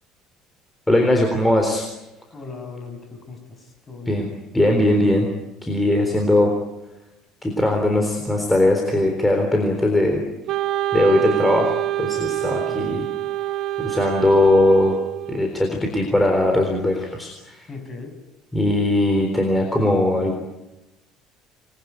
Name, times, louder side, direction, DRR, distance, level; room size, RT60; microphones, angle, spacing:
voice 1, 0.9-1.9 4.1-4.3 4.5-5.3 5.6-6.5 7.4-10.2 10.9-13.1 13.8-15.0 15.3-17.7 18.5-20.4, left 1 dB, 5° left, 2 dB, 3.8 m, -19 dB
voice 2, 2.3-4.2 5.8-6.1 12.6-13.1 17.7-18.1, left 3 dB, 20° left, 5 dB, 6.9 m, -38 dB
Wind instrument woodwind instrument, 10.5-15.6, right 14 dB, 50° right, 1.1 m, -26 dB
27.0 x 21.5 x 9.5 m, 0.99 s
cardioid pair, 160°, 0 cm